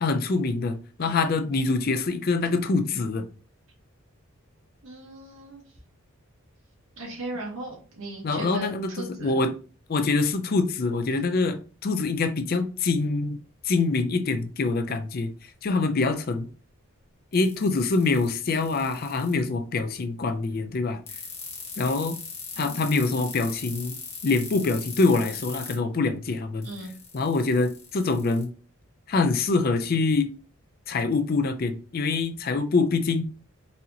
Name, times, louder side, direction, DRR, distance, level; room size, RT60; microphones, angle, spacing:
voice 1, 0.0-3.2 8.2-8.9 9.2-9.5 9.9-13.4 13.6-15.3 15.6-16.5 17.3-21.0 21.8-22.2 22.6-24.0 24.2-26.7 27.1-28.5 29.1-30.3 30.9-33.2, left 3 dB, 45° left, 0.4 m, -25 dB
voice 2, 4.8-5.6 7.0-9.3 22.6-23.2 26.6-26.9, right 2 dB, 70° right, 1.1 m, -38 dB
sound 1, 17.3-19.3 21.1-25.7 26.6-28.4, left 5 dB, 30° left, 1.1 m, -39 dB
4.1 x 2.8 x 2.8 m
head